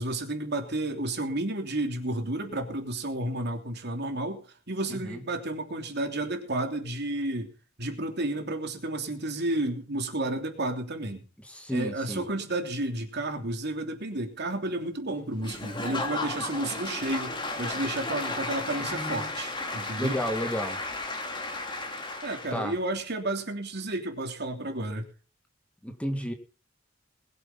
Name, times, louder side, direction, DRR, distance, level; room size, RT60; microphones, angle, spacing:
voice 1, 0.0-4.4 4.7-7.5 7.8-11.2 11.7-20.2 22.2-25.1, right 1 dB, 60° right, 4 dB, 3.1 m, -31 dB
voice 2, 4.9-5.2 11.4-12.3 18.9-19.4 20.0-20.8 22.5-22.7 25.8-26.3, equal, 5° left, 6 dB, 1.8 m, -32 dB
Applause / Crowd, 15.4-22.7, left 2 dB, 25° left, 2.8 m, -34 dB
21.0 x 7.8 x 5.5 m, 0.38 s
head